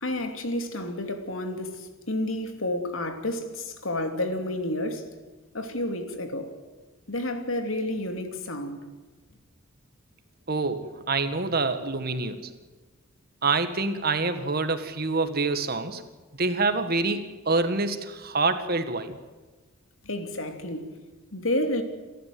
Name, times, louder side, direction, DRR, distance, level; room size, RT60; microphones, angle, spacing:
voice 1, 0.0-5.0 5.5-6.5 7.1-8.8 20.0-21.0 21.3-21.8, left 1 dB, 80° left, 2.9 m, -30 dB
voice 2, 10.5-12.5 13.4-16.0 16.4-19.2, right 3 dB, 50° right, 1.8 m, -26 dB
28.0 x 13.5 x 7.8 m
head